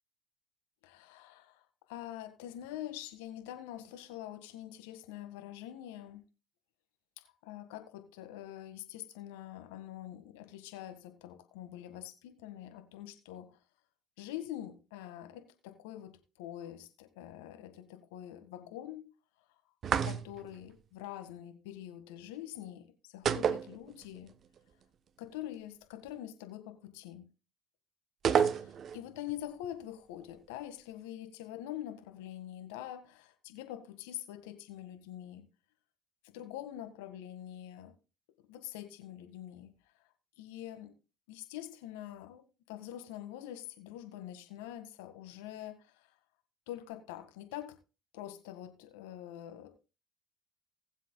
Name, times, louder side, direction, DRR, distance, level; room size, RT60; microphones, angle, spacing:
voice 1, 0.8-6.2 7.2-13.6 14.2-19.1 20.0-24.3 25.2-27.3 28.5-35.5 36.3-37.9 38.5-39.7 40.4-40.9 41.3-46.1 46.7-47.8 48.1-49.7, left 12 dB, 80° left, 1.7 m, -45 dB
sound 1, 19.8-20.6 23.3-24.3 24.6-24.7 28.2-29.0, right 7 dB, 50° right, 0.7 m, -29 dB
19.5 x 7.6 x 2.3 m
hypercardioid pair, 70°, 0 cm